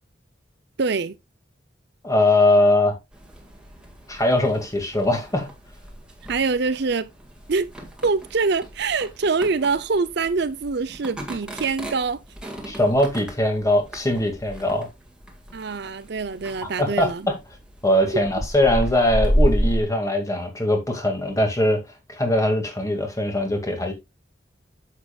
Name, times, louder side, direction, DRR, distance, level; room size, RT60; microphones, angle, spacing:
voice 1, 0.8-1.2 6.3-7.1 7.5-7.7 8.0-12.2 15.5-17.3, right 4 dB, 60° right, 0.6 m, -24 dB
voice 2, 2.0-3.0 4.1-5.5 12.7-14.9 16.8-17.4 17.8-21.8 22.1-23.9, left 1 dB, 15° left, 2.1 m, -21 dB
sound 1, 3.1-19.8, equal, 5° right, 1.9 m, -31 dB
9.6 x 7.4 x 2.3 m
head